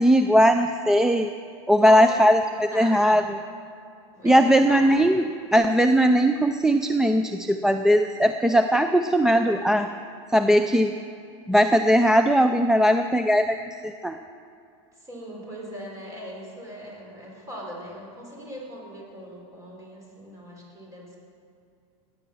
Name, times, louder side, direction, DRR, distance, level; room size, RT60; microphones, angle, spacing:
voice 1, 0.0-1.3 1.7-3.4 4.2-9.9 10.3-10.9 11.5-13.6 13.8-14.2, equal, 5° right, 7 dB, 0.3 m, -19 dB
voice 2, 1.8-2.2 2.5-3.2 4.1-5.0 15.0-21.2, equal, 20° right, -3 dB, 5.0 m, -39 dB
18.5 x 10.5 x 7.1 m, 2.5 s
supercardioid pair, 150°, 16 cm